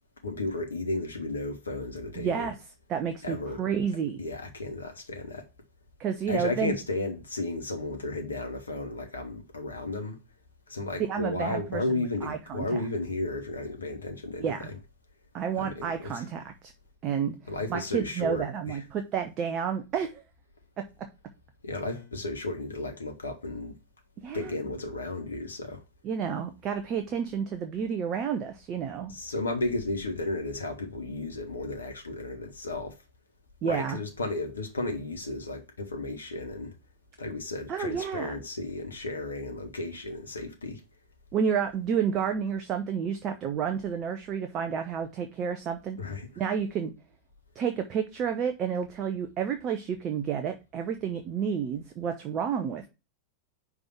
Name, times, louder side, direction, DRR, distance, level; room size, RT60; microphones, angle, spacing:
voice 1, 0.2-2.5 3.2-3.6 4.2-5.4 6.3-10.2 10.7-14.5 15.5-16.3 17.5-18.8 21.6-23.7 24.3-25.8 29.1-33.0 33.6-36.7 37.2-40.8 46.0-46.3, left 2 dB, 75° left, 1.2 m, -34 dB
voice 2, 2.2-2.5 2.9-4.2 6.0-6.7 11.1-11.8 12.2-12.8 14.4-14.7 15.3-16.7 17.0-17.3 17.7-20.2 24.2-24.5 26.0-29.1 33.6-34.0 37.7-38.4 41.3-46.0 46.4-46.9 47.6-52.9, right 7 dB, 35° right, 0.7 m, -30 dB
5.2 x 3.5 x 5.7 m
figure-of-eight pair, 90°, 0 cm